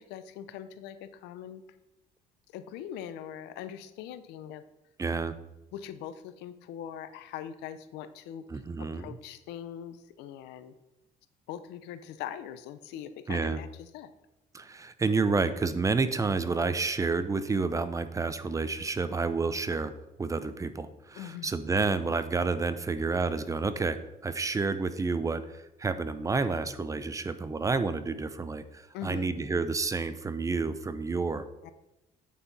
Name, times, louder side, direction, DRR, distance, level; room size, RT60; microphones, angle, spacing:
voice 1, 0.0-1.6 2.5-4.6 5.7-8.4 8.8-10.7 11.5-14.1 21.2-21.5 28.9-29.3 31.6-31.7, left 10 dB, 90° left, 12 dB, 0.6 m, -41 dB
voice 2, 5.0-5.3 8.5-9.2 13.3-13.6 14.5-19.9 20.2-31.5, right 4 dB, 20° right, 12 dB, 0.5 m, -30 dB
8.3 x 5.7 x 4.0 m, 0.95 s
cardioid pair, 110°, 17 cm